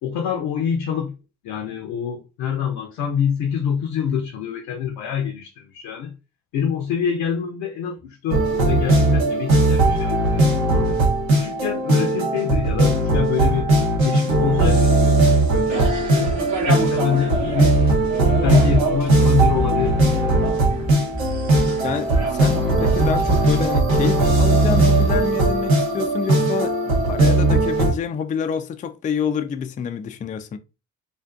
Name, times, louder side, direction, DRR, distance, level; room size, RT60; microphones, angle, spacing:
voice 1, 0.0-1.1 1.4-6.1 6.5-10.9 11.3-13.7 14.0-16.3 16.6-17.8 18.4-20.1 20.4-20.5, left 8 dB, 65° left, 0.7 m, -26 dB
sound 1, 8.3-27.9, right 2 dB, 85° right, 0.8 m, -18 dB
sound 2, 15.7-23.4, right 4 dB, 45° right, 0.9 m, -30 dB
sound 3, 17.3-17.4 17.7-17.9 18.4-19.1 19.6-19.7 20.0-20.2 20.7-21.6 22.1-22.5 23.0-23.6 24.4-24.7, right 2 dB, 25° right, 0.7 m, -27 dB
voice 2, 21.8-30.6, left 7 dB, 20° left, 0.3 m, -27 dB
2.5 x 2.4 x 2.3 m
hypercardioid pair, 45°, 40 cm